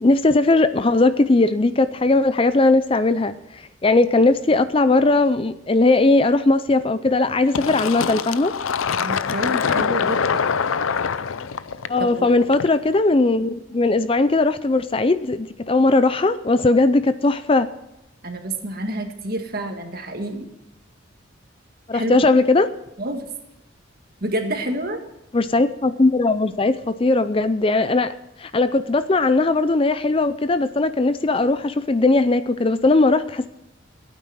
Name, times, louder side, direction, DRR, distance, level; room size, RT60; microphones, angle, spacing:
voice 1, 0.0-3.3 3.8-8.5 11.9-17.7 21.9-22.7 25.3-28.1 28.4-33.5, left 2 dB, 25° left, 13 dB, 0.4 m, -18 dB
Fill (with liquid), 7.5-12.9, left 6 dB, 85° left, 0.6 m, -24 dB
voice 2, 9.0-10.5 12.0-12.3 18.2-20.5 21.9-22.3 23.0-23.3 24.2-25.0, right 1 dB, 45° right, 4 dB, 1.8 m, -28 dB
16.0 x 9.1 x 6.4 m, 0.89 s
head